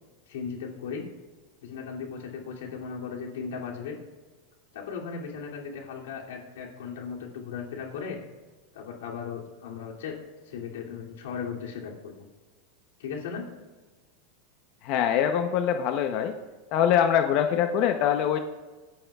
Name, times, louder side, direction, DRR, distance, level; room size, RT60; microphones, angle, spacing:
voice 1, 0.3-1.0 1.6-4.0 4.7-8.2 8.7-10.2 10.5-12.3 13.0-13.5, left 6 dB, 85° left, -2 dB, 2.7 m, -37 dB
voice 2, 14.8-16.4 16.7-18.4, left 9 dB, 50° left, 7 dB, 0.8 m, -23 dB
26.5 x 9.2 x 2.4 m, 1.3 s
supercardioid pair, 135°, 0 cm